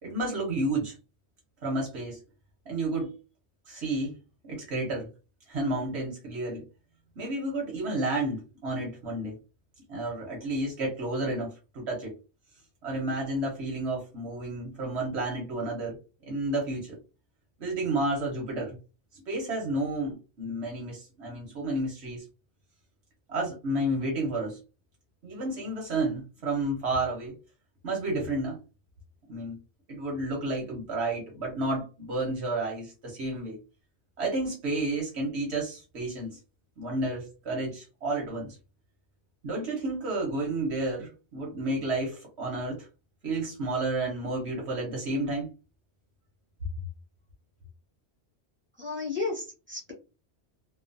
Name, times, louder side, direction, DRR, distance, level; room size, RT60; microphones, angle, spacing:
voice 1, 0.0-0.9 1.6-2.2 2.7-3.1 3.7-4.2 4.4-5.1 5.5-6.6 7.2-9.4 9.9-12.1 12.8-16.0 16.3-17.0 17.6-18.8 19.1-22.2 23.3-24.6 25.2-27.3 27.8-28.6 29.3-29.6 29.9-33.6 34.2-36.4 36.8-38.6 39.4-42.9 43.2-45.5, right 2 dB, 85° right, -2 dB, 1.2 m, -31 dB
voice 2, 48.8-49.9, left 3 dB, 10° right, -4 dB, 1.1 m, -33 dB
3.0 x 2.0 x 2.6 m, 0.31 s
omnidirectional pair, 1.1 m